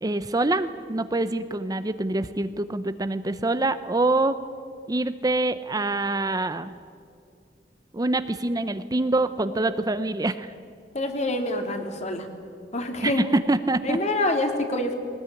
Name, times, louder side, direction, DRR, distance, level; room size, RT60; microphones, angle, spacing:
voice 1, 0.0-4.4 4.9-6.8 7.9-10.5 13.0-13.1 13.5-14.0, right 2 dB, 20° right, 11 dB, 0.7 m, -25 dB
voice 2, 10.9-12.3 12.7-13.3 13.8-15.0, left 1 dB, 40° left, 5 dB, 2.7 m, -26 dB
20.5 x 19.5 x 10.0 m, 2.4 s
head